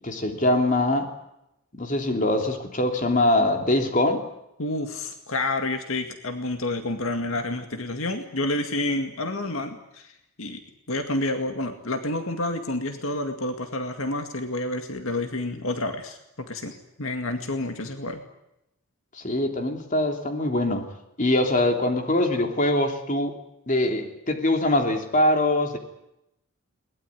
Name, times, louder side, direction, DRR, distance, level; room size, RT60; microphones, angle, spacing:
voice 1, 0.0-1.1 1.8-4.2 19.2-20.8 21.2-23.3 23.7-25.8, left 1 dB, 35° left, 4 dB, 3.1 m, -23 dB
voice 2, 4.6-10.6 10.9-18.2, left 2 dB, 65° left, 6 dB, 2.1 m, -29 dB
22.0 x 20.0 x 9.7 m, 0.85 s
head